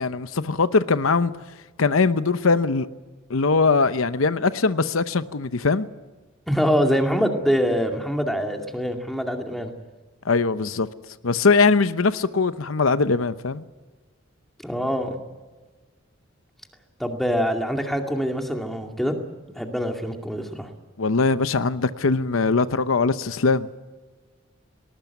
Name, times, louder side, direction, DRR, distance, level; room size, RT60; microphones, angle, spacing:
voice 1, 0.0-1.3 1.8-2.9 3.3-5.9 10.2-10.9 11.2-13.6 21.0-23.7, left 4 dB, 85° left, 0.8 m, -21 dB
voice 2, 6.5-9.7 14.6-15.2 17.0-19.2 19.6-20.7, equal, ahead, 2.3 m, -24 dB
19.5 x 19.5 x 9.4 m
head